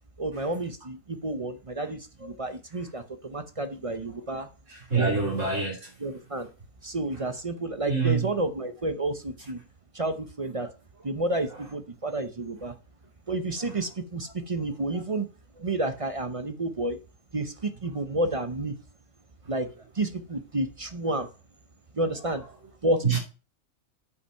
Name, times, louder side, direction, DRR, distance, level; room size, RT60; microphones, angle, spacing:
voice 1, 0.2-4.5 5.0-5.2 6.0-6.5 6.8-9.6 9.9-10.7 11.0-12.7 13.3-15.3 15.6-17.0 17.3-18.8 19.5-19.7 19.9-21.3 21.9-22.4 22.8-23.2, right 2 dB, 35° right, 0.6 m, -30 dB
voice 2, 4.7-5.9 7.9-8.3 23.0-23.2, right 5 dB, 65° right, 3.5 m, -25 dB
8.3 x 5.5 x 5.5 m
omnidirectional pair, 1.4 m